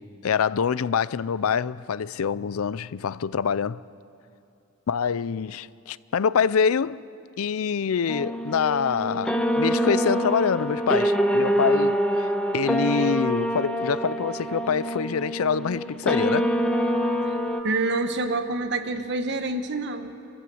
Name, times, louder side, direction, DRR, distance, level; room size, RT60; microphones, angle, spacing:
voice 1, 0.0-3.8 4.9-7.0 7.4-16.5, left 6 dB, 80° left, 0.5 m, -25 dB
sound 1, 8.1-17.6, equal, 5° left, 1.2 m, -25 dB
voice 2, 17.6-20.2, right 2 dB, 55° right, 1.3 m, -27 dB
27.0 x 15.0 x 7.8 m
head